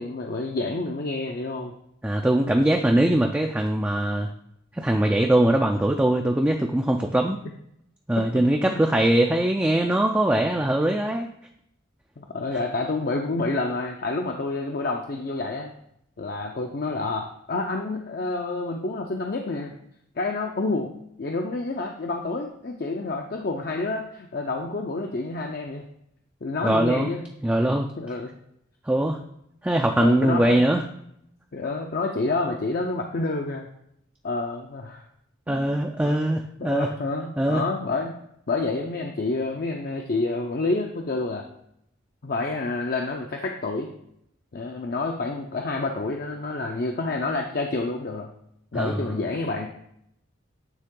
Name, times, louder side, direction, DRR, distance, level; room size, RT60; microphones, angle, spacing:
voice 1, 0.0-1.7 8.5-8.7 12.2-15.7 16.2-19.7 20.2-20.9 21.2-25.8 26.4-27.2 28.0-28.3 30.0-30.6 31.5-33.7 34.2-35.0 35.5-36.3 36.6-38.1 38.5-41.4 42.2-43.9 44.5-48.3 48.7-49.7, left 3 dB, 45° left, 2 dB, 0.5 m, -28 dB
voice 2, 2.0-4.3 4.8-7.4 8.1-11.3 26.6-27.1 27.4-27.9 28.9-29.2 29.6-30.8 35.5-36.9 37.4-37.6 48.7-49.1, right 1 dB, 10° right, 2 dB, 0.3 m, -21 dB
9.1 x 3.7 x 3.7 m, 0.74 s
head